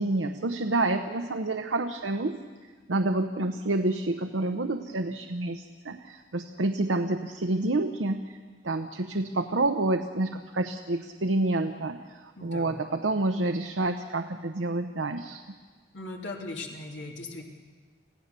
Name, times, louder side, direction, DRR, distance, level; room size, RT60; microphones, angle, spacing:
voice 1, 0.0-2.4 2.9-8.3 8.6-15.4, right 2 dB, 85° right, 6 dB, 0.9 m, -28 dB
voice 2, 12.4-12.8 15.9-17.4, left 2 dB, 85° left, 0 dB, 2.6 m, -39 dB
26.5 x 16.5 x 6.8 m, 1.5 s
head